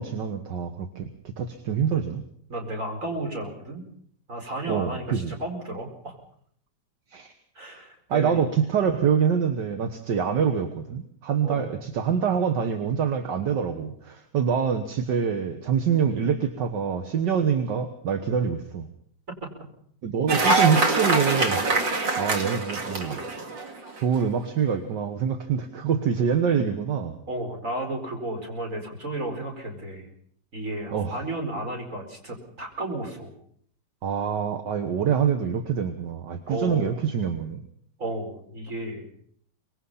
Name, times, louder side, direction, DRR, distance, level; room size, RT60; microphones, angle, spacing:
voice 1, 0.0-2.2 4.7-5.3 7.1-7.3 8.1-18.9 20.0-21.6 22.2-23.2 24.0-27.2 30.9-31.1 34.0-37.6, right 7 dB, 70° right, 7 dB, 2.0 m, -25 dB
voice 2, 2.5-3.8 4.3-6.2 7.6-8.4 11.4-11.7 19.3-19.5 27.3-30.1 30.5-33.3 36.5-37.0 38.0-39.1, right 1 dB, 45° right, 2 dB, 5.3 m, -33 dB
Cheering / Applause, 20.3-24.0, right 3 dB, 90° right, 2.7 m, -24 dB
25.0 x 21.5 x 5.6 m, 0.63 s
omnidirectional pair, 1.9 m